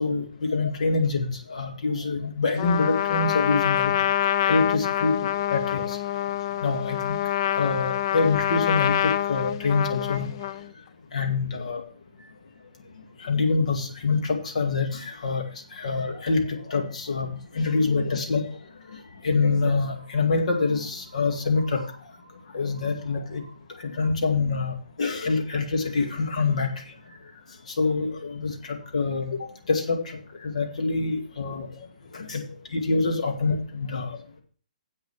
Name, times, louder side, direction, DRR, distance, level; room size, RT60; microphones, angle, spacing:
voice 1, 0.0-3.9 4.4-6.0 6.6-7.1 7.6-10.3 11.1-11.8 13.2-15.4 15.8-18.4 19.2-21.8 22.5-23.4 23.8-26.7 27.8-29.4 29.7-30.0 30.4-31.7 32.1-32.4 32.7-34.2, left 4 dB, 60° left, 3 dB, 2.2 m, -25 dB
Trumpet, 2.6-10.7, left 12 dB, 35° left, 0.4 m, -26 dB
7.7 x 6.7 x 7.0 m, 0.43 s
figure-of-eight pair, 130°, 4 cm